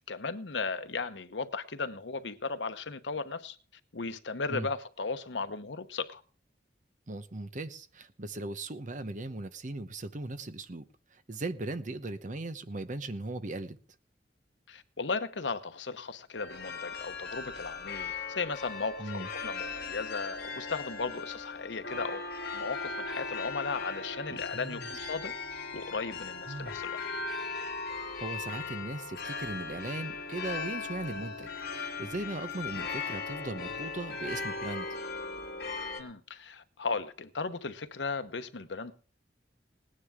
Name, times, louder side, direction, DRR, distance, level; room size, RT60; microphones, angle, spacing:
voice 1, 0.1-3.6 3.9-6.2 14.7-22.3 22.5-25.3 25.7-27.0 36.0-38.9, left 4 dB, 85° left, 1.0 m, -36 dB
voice 2, 7.1-10.8 11.1-13.8 19.0-19.3 24.3-24.9 26.5-26.7 28.0-34.9, right 2 dB, 45° right, 0.9 m, -38 dB
sound 1, 16.4-36.0, left 4 dB, 60° left, 2.6 m, -38 dB
19.0 x 9.9 x 3.6 m
head